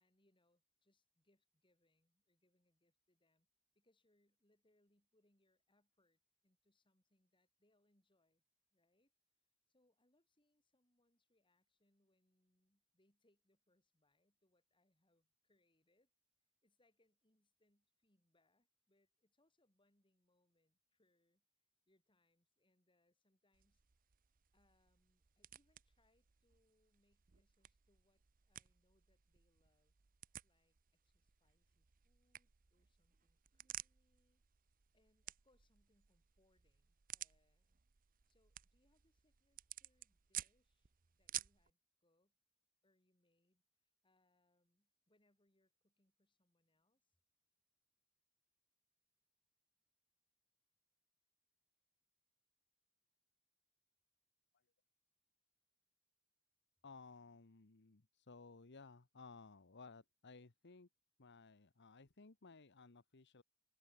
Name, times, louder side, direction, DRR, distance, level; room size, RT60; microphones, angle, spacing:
voice 1, 0.0-3.5 3.7-8.4 8.7-9.1 9.7-16.1 16.6-21.4 21.9-24.2 24.5-30.0 30.4-34.4 34.9-37.8 38.3-40.9 41.2-42.4 42.8-47.2, left 1 dB, 20° left, 7.7 m, -81 dB
sound 1, 23.5-41.7, right 13 dB, 40° right, 0.6 m, -55 dB
voice 2, 56.8-60.9 61.2-63.4, left 4 dB, 50° left, 1.1 m, -59 dB
head